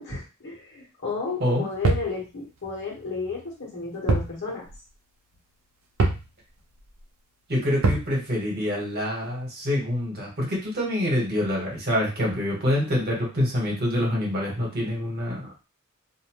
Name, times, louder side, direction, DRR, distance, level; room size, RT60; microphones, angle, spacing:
voice 1, 0.0-4.7, left 4 dB, 55° left, -2 dB, 1.1 m, -33 dB
sound 1, 1.8-2.2 4.1-4.4 4.7-4.8 6.0-6.3 7.8-8.1, right 2 dB, 70° right, 0.6 m, -22 dB
voice 2, 7.5-15.5, left 1 dB, 45° right, -2 dB, 1.2 m, -26 dB
2.6 x 2.2 x 2.9 m, 0.30 s
head